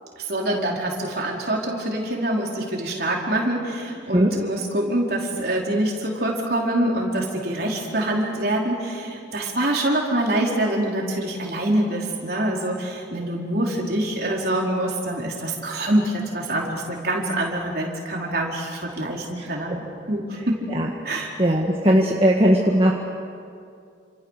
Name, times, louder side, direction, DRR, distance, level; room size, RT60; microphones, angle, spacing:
voice 1, 0.3-19.8 20.1-20.7 21.0-21.3, right 1 dB, 55° right, -2 dB, 4.8 m, -25 dB
voice 2, 21.4-22.9, equal, 30° right, -2 dB, 1.7 m, -18 dB
29.5 x 27.0 x 6.8 m, 2.4 s
head